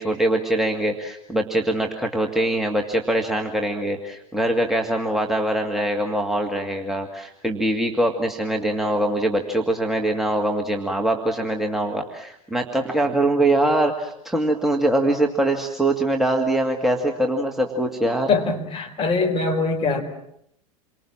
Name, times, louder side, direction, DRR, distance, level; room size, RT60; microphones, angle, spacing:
voice 1, 0.0-18.3, right 1 dB, ahead, 1 dB, 2.1 m, -23 dB
voice 2, 18.3-20.0, left 4 dB, 30° left, 5 dB, 4.5 m, -22 dB
28.5 x 24.5 x 7.4 m, 0.73 s
figure-of-eight pair, 85°, 18 cm